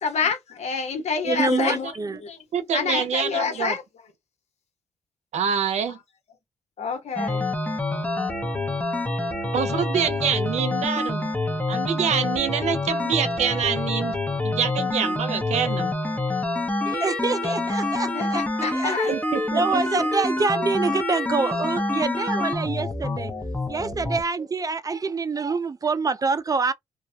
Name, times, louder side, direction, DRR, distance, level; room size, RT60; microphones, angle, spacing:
voice 1, 0.0-1.9 2.2-2.4 2.7-3.8 5.9-6.0 6.8-7.5 17.4-17.6 17.9-19.2 19.7-20.0, left 5 dB, 65° left, 1.0 m, -28 dB
voice 2, 1.2-2.2 16.8-18.4 18.7-19.0 19.5-23.3 23.7-26.7, right 4 dB, 30° right, 0.4 m, -26 dB
voice 3, 1.8-2.2 2.5-3.8 5.3-6.0 9.5-11.3 11.7-14.1 14.4-16.0 19.1-19.8, right 7 dB, 75° right, 0.6 m, -26 dB
sound 1, 7.2-24.2, left 2 dB, 10° left, 0.7 m, -27 dB
2.3 x 2.1 x 2.7 m
supercardioid pair, 55°, 12 cm